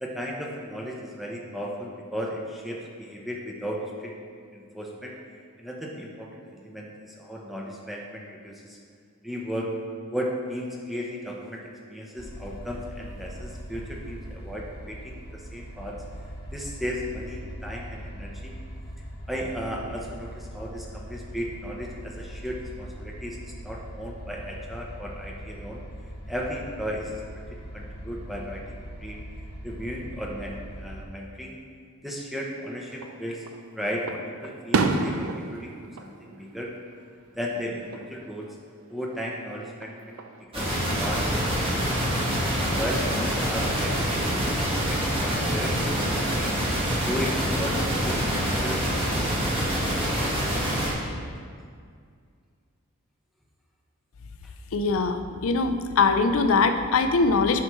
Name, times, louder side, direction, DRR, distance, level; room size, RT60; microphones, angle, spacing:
voice 1, 0.0-4.1 4.5-5.1 5.6-8.8 9.2-9.7 10.1-16.0 16.5-18.5 19.3-23.4 23.6-25.8 26.3-27.1 27.5-29.2 29.6-31.6 32.0-33.4 33.8-36.7 37.4-38.6 38.9-40.2 40.5-40.7 41.0-42.0 42.6-46.5 47.0-49.5, equal, ahead, -2 dB, 0.7 m, -35 dB
sound 1, 12.2-31.1, equal, 45° left, 1.0 m, -41 dB
Fireworks, 32.9-33.6 34.1-37.2 37.5-38.1 39.6-40.4, right 3 dB, 70° right, 0.5 m, -30 dB
sound 2, 40.5-50.9, equal, 25° right, 1.4 m, -26 dB
voice 2, 54.7-57.6, left 4 dB, 65° left, 8 dB, 0.5 m, -22 dB
9.4 x 5.7 x 3.1 m, 2.1 s
head